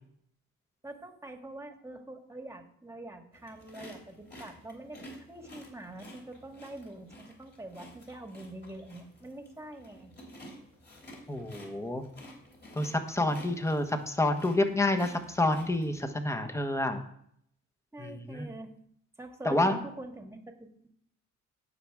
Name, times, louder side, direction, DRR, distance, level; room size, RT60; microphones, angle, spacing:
voice 1, 0.8-10.1 17.9-18.7 19.2-20.9, right 2 dB, 10° right, 4 dB, 1.7 m, -45 dB
sound 1, 3.3-16.0, left 1 dB, 35° left, 3.5 m, -52 dB
voice 2, 11.3-12.0 12.7-17.0 18.0-18.5 19.4-19.8, left 2 dB, 10° left, 6 dB, 1.3 m, -28 dB
17.5 x 5.9 x 3.6 m, 0.68 s
cardioid pair, 90°, 30 cm